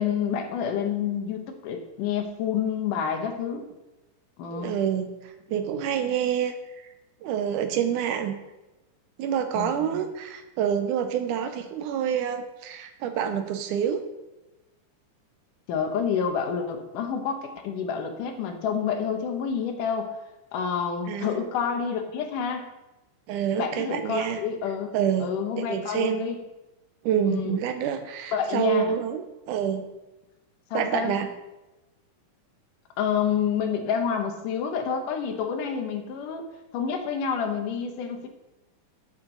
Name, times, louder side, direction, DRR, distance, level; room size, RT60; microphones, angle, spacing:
voice 1, 0.0-3.6 4.4-4.8 9.5-10.0 15.7-20.1 20.5-22.7 23.6-24.9 25.2-26.4 27.3-27.6 28.3-28.9 30.7-31.1 33.0-36.5 36.7-38.3, left 7 dB, 80° left, 5 dB, 2.6 m, -28 dB
voice 2, 4.5-6.5 7.2-8.4 9.2-14.0 21.1-21.4 23.3-24.4 24.9-26.2 27.0-29.9 30.7-31.3, right 9 dB, 75° right, 7 dB, 2.2 m, -27 dB
10.5 x 8.0 x 3.9 m, 1.0 s
omnidirectional pair, 3.7 m